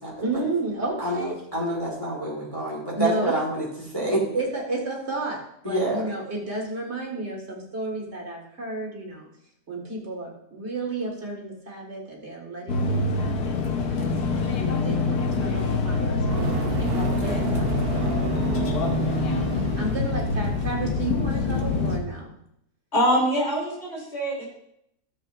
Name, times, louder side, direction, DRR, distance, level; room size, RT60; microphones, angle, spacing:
voice 1, 0.2-1.4 3.0-3.3 4.0-4.1 4.3-9.3 9.7-14.2 14.6-16.9 17.2-19.3 19.8-22.3, right 2 dB, 45° right, -2 dB, 2.0 m, -32 dB
voice 2, 1.0-4.2 5.6-6.1, right 1 dB, 15° left, -3 dB, 1.7 m, -27 dB
sound 1, 12.7-22.0, left 4 dB, 75° left, 1.5 m, -25 dB
Fire, 16.1-21.4, right 7 dB, 65° right, 0.5 m, -31 dB
voice 3, 22.9-24.4, equal, 40° left, -4 dB, 3.5 m, -24 dB
13.5 x 7.1 x 2.5 m, 0.76 s
omnidirectional pair, 1.6 m